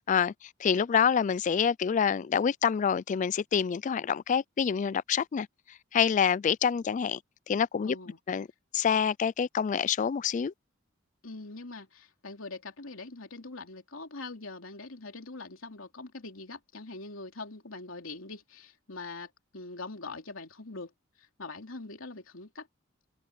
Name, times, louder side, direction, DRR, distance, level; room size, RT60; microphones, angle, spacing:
voice 1, 0.0-5.5 5.9-7.2 7.5-8.0 8.3-8.5 8.7-10.5, left 7 dB, 40° left, 0.3 m, -27 dB
voice 2, 7.8-8.2 11.2-22.7, left 3 dB, 85° left, 3.1 m, -43 dB
head